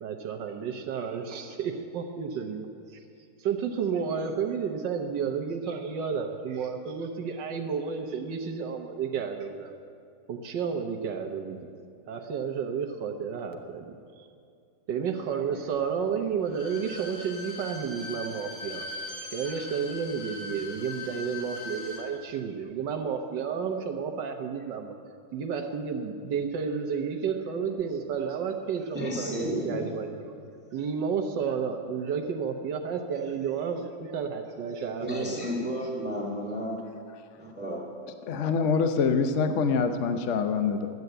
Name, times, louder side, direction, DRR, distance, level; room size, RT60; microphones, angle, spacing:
voice 1, 0.0-3.0 3.4-9.7 10.3-11.7 12.1-14.3 14.9-18.9 19.3-24.9 25.3-30.3 30.7-35.5, right 6 dB, 65° right, 5 dB, 1.4 m, -31 dB
Bowed string instrument, 16.4-22.1 22.4-22.5, left 2 dB, 45° left, 2.5 m, -40 dB
voice 2, 28.9-30.0 35.0-36.8 37.4-37.8, equal, 5° right, -3 dB, 1.7 m, -32 dB
voice 3, 38.3-40.9, left 5 dB, 70° left, 7 dB, 0.7 m, -25 dB
12.0 x 9.4 x 7.8 m, 2.4 s
omnidirectional pair, 2.3 m